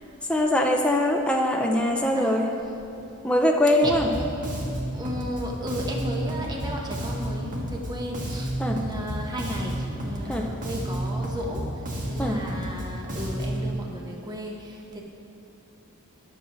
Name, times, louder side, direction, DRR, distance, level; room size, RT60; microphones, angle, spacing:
voice 1, 0.3-2.5 3.2-4.1 8.6-8.8 10.3-10.5 12.2-12.4, left 1 dB, 5° left, 1 dB, 0.5 m, -22 dB
voice 2, 2.1-2.6 3.8-4.4 4.9-15.0, equal, 20° right, -1 dB, 1.2 m, -35 dB
Bass guitar, 3.8-13.7, right 1 dB, 35° right, 1.5 m, -31 dB
20.0 x 7.4 x 3.1 m, 2.8 s
head